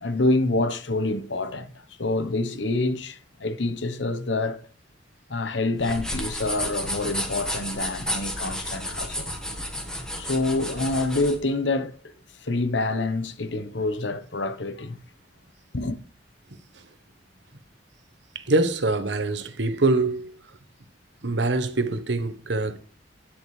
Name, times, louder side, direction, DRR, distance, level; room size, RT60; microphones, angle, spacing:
voice 1, 0.0-1.7 2.0-4.6 5.3-9.4 10.2-11.9 12.4-15.0 15.7-16.0, left 2 dB, 90° left, 1.1 m, -26 dB
sound 1, 5.8-11.4, equal, 5° left, 1.8 m, -32 dB
voice 2, 18.3-20.3 21.2-22.8, right 2 dB, 75° right, 1.1 m, -24 dB
11.0 x 9.3 x 3.3 m
head